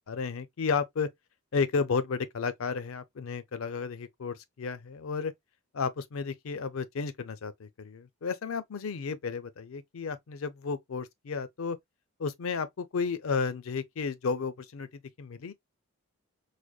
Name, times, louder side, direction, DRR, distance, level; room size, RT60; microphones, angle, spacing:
voice 1, 0.1-1.1 1.5-5.3 5.7-11.8 12.2-14.9 15.2-15.5, left 5 dB, 70° left, 0.5 m, -32 dB
4.8 x 2.2 x 2.3 m
head